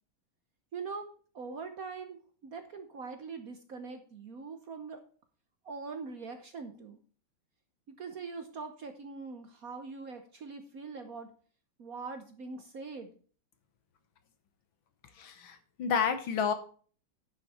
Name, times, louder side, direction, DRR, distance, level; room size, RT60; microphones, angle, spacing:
voice 1, 0.7-1.1 1.3-5.0 5.6-7.0 8.0-11.3 11.8-13.2, right 4 dB, 55° right, 7 dB, 1.1 m, -42 dB
voice 2, 15.2-16.5, left 7 dB, 70° left, 9 dB, 1.9 m, -30 dB
10.5 x 6.9 x 4.3 m, 0.42 s
omnidirectional pair, 2.3 m